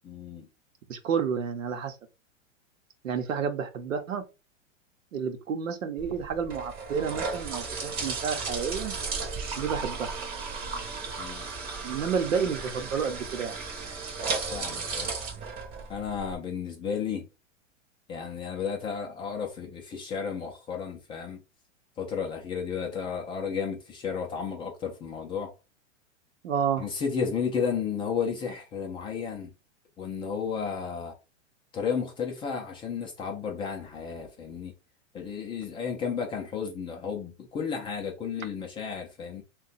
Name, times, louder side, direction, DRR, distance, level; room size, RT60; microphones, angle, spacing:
voice 1, 0.0-0.5 11.2-11.5 14.5-15.1 15.9-17.3 18.1-21.4 22.0-25.5 26.8-29.5 30.0-31.1 31.7-34.7 35.1-39.4, left 6 dB, 15° left, 0.3 m, -33 dB
voice 2, 0.9-2.0 3.0-4.2 5.1-8.9 9.6-10.1 11.8-13.6 26.4-26.9, right 6 dB, 85° right, 0.8 m, -30 dB
sound 1, 6.0-16.4, right 4 dB, 25° right, 0.7 m, -35 dB
2.8 x 2.2 x 4.0 m
hypercardioid pair, 120°, 38 cm